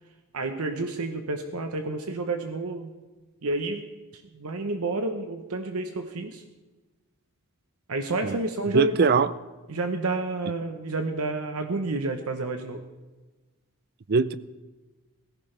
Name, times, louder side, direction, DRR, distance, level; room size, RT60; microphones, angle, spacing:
voice 1, 0.3-2.9 3.4-3.8 4.1-6.4 7.9-9.1 9.7-12.8, right 2 dB, 70° right, 6 dB, 1.0 m, -30 dB
voice 2, 8.7-9.3 14.1-14.3, right 5 dB, 45° right, 16 dB, 0.5 m, -21 dB
18.0 x 15.5 x 3.4 m, 1.2 s
head